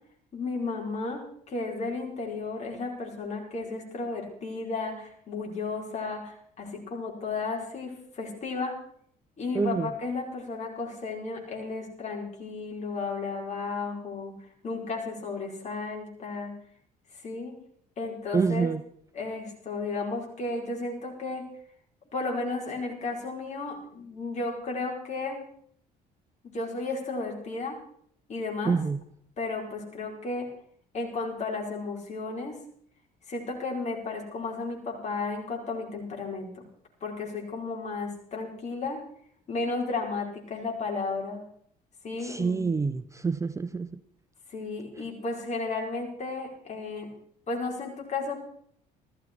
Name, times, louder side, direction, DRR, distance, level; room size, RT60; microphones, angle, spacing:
voice 1, 0.3-8.8 9.4-14.3 14.6-16.5 17.2-17.5 18.0-18.7 19.1-21.5 22.1-25.4 26.4-27.8 28.3-28.8 29.4-30.5 30.9-32.5 33.3-36.6 37.0-39.0 39.5-41.4 42.0-42.6 44.5-47.1 47.5-48.4, left 3 dB, 40° left, 0 dB, 4.9 m, -33 dB
voice 2, 9.5-9.9 18.3-18.8 28.7-29.0 42.2-43.9, right 4 dB, 20° right, 12 dB, 0.6 m, -27 dB
16.0 x 14.0 x 4.6 m, 0.63 s
cardioid pair, 110°, 17 cm